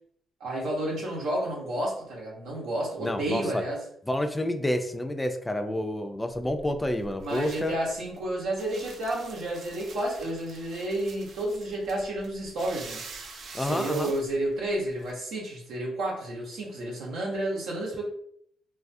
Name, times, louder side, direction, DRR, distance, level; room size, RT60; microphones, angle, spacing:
voice 1, 0.4-3.8 7.2-13.0 13.6-18.0, right 1 dB, 85° right, -3 dB, 0.8 m, -31 dB
voice 2, 3.0-3.6 4.1-7.7 13.5-14.1, left 1 dB, 10° left, 6 dB, 0.3 m, -29 dB
sound 1, 6.3-15.1, right 4 dB, 65° right, 0.4 m, -46 dB
2.4 x 2.3 x 2.5 m, 0.68 s
cardioid pair, 90°, 0 cm